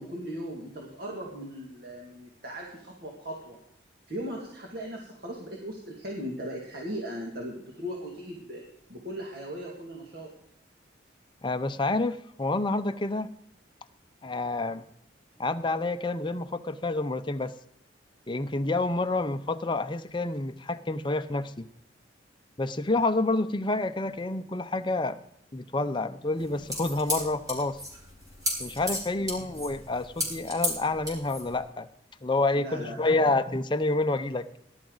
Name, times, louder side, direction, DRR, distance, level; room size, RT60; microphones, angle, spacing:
voice 1, 0.0-3.6 4.1-8.6 8.9-10.3 32.6-33.0, equal, 55° right, -1 dB, 2.2 m, -38 dB
voice 2, 11.4-13.3 14.2-14.8 15.4-17.5 18.3-21.7 22.6-25.2 25.5-27.8 28.6-31.9 32.2-34.5, left 2 dB, 25° left, 8 dB, 0.6 m, -28 dB
sound 1, 26.4-31.6, equal, 20° right, 4.4 m, -33 dB
18.5 x 11.5 x 4.0 m, 0.76 s
head